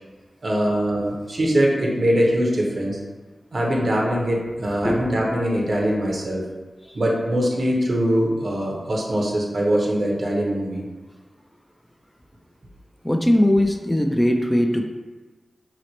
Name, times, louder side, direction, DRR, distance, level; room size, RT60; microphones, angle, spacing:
voice 1, 0.4-3.0 3.5-6.4 6.9-10.8, equal, 60° right, -2 dB, 0.7 m, -22 dB
voice 2, 13.0-14.9, left 1 dB, 10° left, 3 dB, 0.3 m, -20 dB
2.9 x 2.1 x 4.1 m, 1.3 s
cardioid pair, 45°, 0 cm